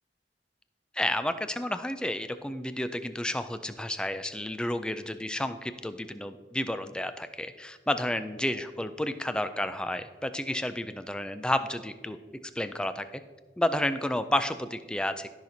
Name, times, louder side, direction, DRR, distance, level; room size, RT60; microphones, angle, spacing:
voice 1, 0.9-12.2 12.6-13.2 13.6-15.3, left 1 dB, 5° left, 10 dB, 0.3 m, -31 dB
13.0 x 5.9 x 2.7 m, 1.5 s
head